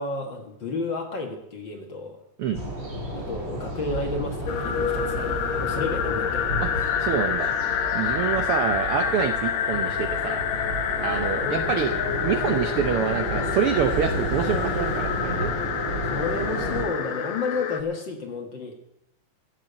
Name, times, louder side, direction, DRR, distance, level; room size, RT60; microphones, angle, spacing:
voice 1, 0.0-2.2 3.1-6.5 11.4-12.0 16.0-18.8, left 3 dB, 45° left, 3 dB, 2.1 m, -31 dB
sound 1, 2.5-16.8, right 1 dB, 35° right, 4.6 m, -32 dB
sound 2, 4.5-17.8, left 8 dB, 70° left, 2.1 m, -28 dB
voice 2, 6.6-7.6 7.9-10.4 11.0-11.9 12.2-15.5, right 8 dB, 70° right, 7 dB, 1.3 m, -26 dB
15.5 x 7.5 x 7.9 m, 0.82 s
omnidirectional pair, 3.5 m